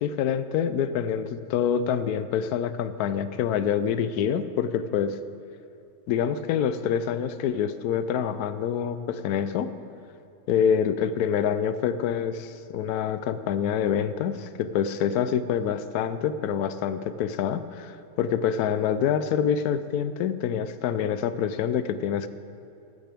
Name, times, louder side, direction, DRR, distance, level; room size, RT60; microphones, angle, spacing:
voice 1, 0.0-5.2 6.1-9.7 10.5-22.3, left 8 dB, 85° left, 13 dB, 1.1 m, -26 dB
15.0 x 11.5 x 3.5 m, 2.7 s
omnidirectional pair, 1.6 m